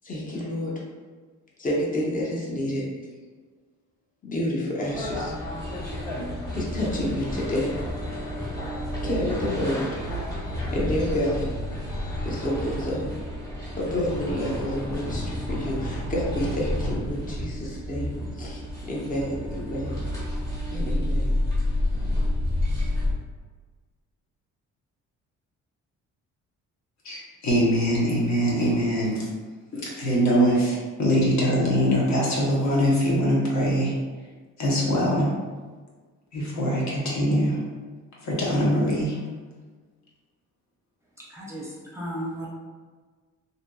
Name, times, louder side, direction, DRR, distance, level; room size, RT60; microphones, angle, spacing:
voice 1, 0.0-0.7 1.6-2.8 4.2-5.3 6.5-7.8 9.0-9.9 10.7-11.5 12.2-13.1 13.8-20.0 20.7-21.4, left 1 dB, 30° left, -4 dB, 0.8 m, -29 dB
sound 1, 4.9-23.1, left 1 dB, 10° left, 1.4 m, -30 dB
voice 2, 27.0-29.3 29.7-33.9 34.6-35.3 36.3-37.6 38.2-39.2, equal, 65° left, -5 dB, 1.0 m, -23 dB
voice 3, 41.3-42.5, equal, 10° right, -6 dB, 0.7 m, -34 dB
2.7 x 2.5 x 2.3 m, 1.4 s
cardioid pair, 90°, 30 cm